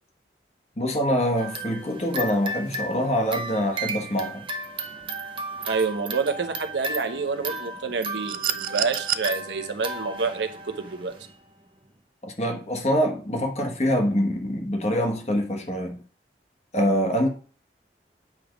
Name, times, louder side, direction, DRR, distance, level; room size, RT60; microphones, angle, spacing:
voice 1, 0.8-4.5 12.2-16.0 16.7-17.3, equal, 35° left, 1.2 m, -25 dB
sound 1, 1.4-11.4, right 2 dB, 30° right, 0.7 m, -34 dB
voice 2, 5.6-11.1, right 4 dB, 90° right, 0.8 m, -28 dB
sound 2, 8.3-9.3 10.8-10.9, right 11 dB, 50° right, 0.3 m, -28 dB
8.5 x 3.4 x 5.0 m
head